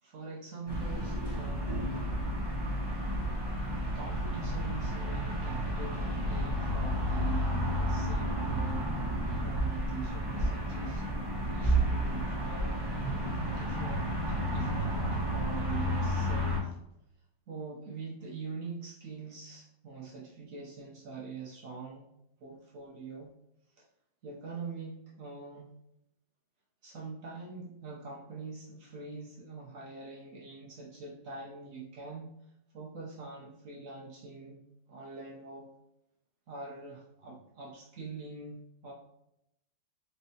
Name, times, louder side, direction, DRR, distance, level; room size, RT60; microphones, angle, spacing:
voice 1, 0.0-1.8 3.9-8.9 9.4-11.1 11.5-12.9 13.4-16.8 17.5-22.1 22.4-23.3 23.7-23.8 24.2-25.7 26.8-34.6 34.9-35.7 36.5-38.9, right 4 dB, 65° right, -4 dB, 0.8 m, -44 dB
sound 1, 0.7-16.6, equal, 25° right, 0.5 m, -31 dB
4.3 x 3.3 x 2.7 m, 0.82 s
omnidirectional pair, 2.1 m